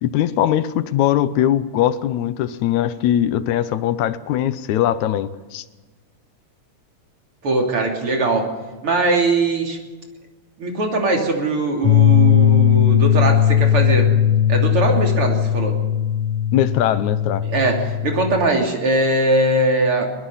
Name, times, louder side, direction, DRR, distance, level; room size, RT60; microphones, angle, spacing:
voice 1, 0.0-5.6 16.5-17.4, left 11 dB, 85° left, 14 dB, 2.2 m, -20 dB
voice 2, 7.4-8.5 8.8-9.8 10.6-14.1 14.5-15.8 17.4-20.1, right 2 dB, 50° right, 1 dB, 3.9 m, -20 dB
sound 1, 11.8-18.5, left 9 dB, 60° left, 2.2 m, -17 dB
22.5 x 20.5 x 5.7 m, 1.3 s
omnidirectional pair, 3.3 m